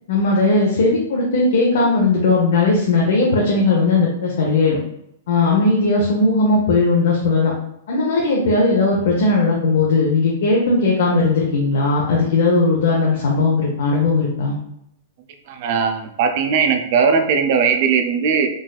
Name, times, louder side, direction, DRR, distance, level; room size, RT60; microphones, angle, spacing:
voice 1, 0.1-4.8 5.3-7.5 7.9-14.6, left 3 dB, 70° left, -3 dB, 0.7 m, -17 dB
voice 2, 15.5-18.5, right 6 dB, 50° right, 6 dB, 0.4 m, -18 dB
3.9 x 2.4 x 2.3 m, 0.77 s
hypercardioid pair, 150°, 0 cm